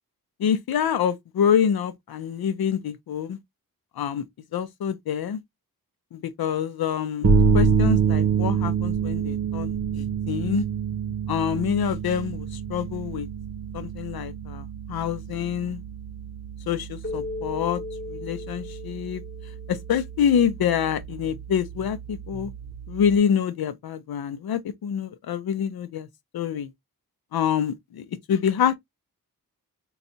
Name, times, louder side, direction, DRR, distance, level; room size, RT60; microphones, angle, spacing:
voice 1, 0.4-3.4 4.0-4.3 4.5-5.4 6.1-10.6 11.3-13.3 13.7-15.8 16.7-17.8 18.1-19.2 19.7-22.5 22.9-26.1 26.3-26.7 27.3-28.8, left 8 dB, 90° left, 0.6 m, -26 dB
sound 1, 7.2-23.2, right 6 dB, 45° right, 0.7 m, -27 dB
Keyboard (musical), 17.0-20.2, left 2 dB, 30° left, 1.0 m, -37 dB
4.0 x 2.3 x 2.6 m
wide cardioid pair, 130°, 36 cm